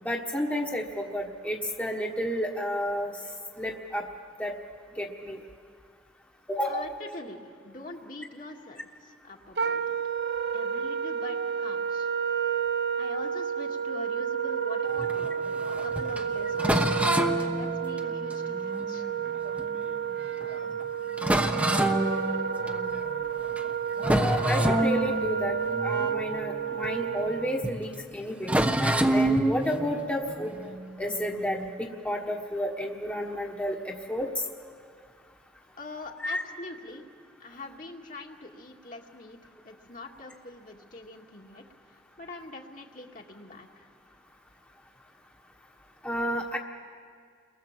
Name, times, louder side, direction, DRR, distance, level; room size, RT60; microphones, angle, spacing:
voice 1, 0.0-3.1 3.6-4.0 4.4-4.5 5.0-5.4 6.5-6.9 24.1-25.6 25.8-30.5 31.0-31.7 32.0-34.4 36.2-36.4 46.0-46.6, equal, 10° left, 0 dB, 1.4 m, -31 dB
voice 2, 6.7-10.0 10.5-12.1 13.0-15.3 15.7-16.8 17.3-19.1 35.7-37.1 37.4-43.9, left 2 dB, 50° left, 0 dB, 2.1 m, -44 dB
Wind instrument woodwind instrument, 9.6-27.7, right 7 dB, 65° right, 0.8 m, -31 dB
sound 1, 14.9-19.8 20.4-20.5 20.8-20.9 21.2-23.1 23.5-23.7 24.0-27.4 27.6-27.8 28.4-31.5, right 1 dB, 10° right, 1.0 m, -28 dB
30.0 x 22.5 x 7.4 m, 2.1 s
head